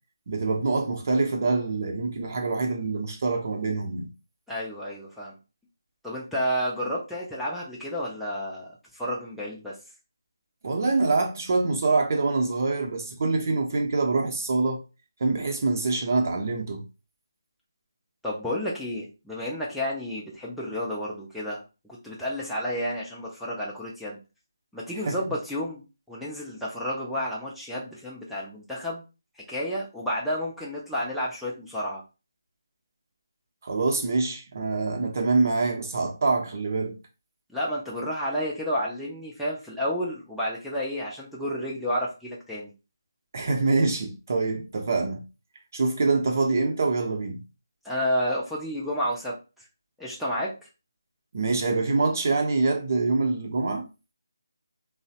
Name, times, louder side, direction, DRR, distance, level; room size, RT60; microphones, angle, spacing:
voice 1, 0.3-4.1 10.6-14.8 15.2-16.9 25.0-25.2 33.6-37.0 43.3-45.2 45.7-47.4 51.3-53.9, right 3 dB, 45° right, 0.7 m, -25 dB
voice 2, 4.5-5.4 6.0-9.8 18.2-21.6 21.9-24.2 24.7-29.0 29.4-32.0 37.5-42.7 47.8-49.7 50.0-50.7, equal, ahead, 0.5 m, -31 dB
3.0 x 2.0 x 2.8 m
figure-of-eight pair, 160°, 2 cm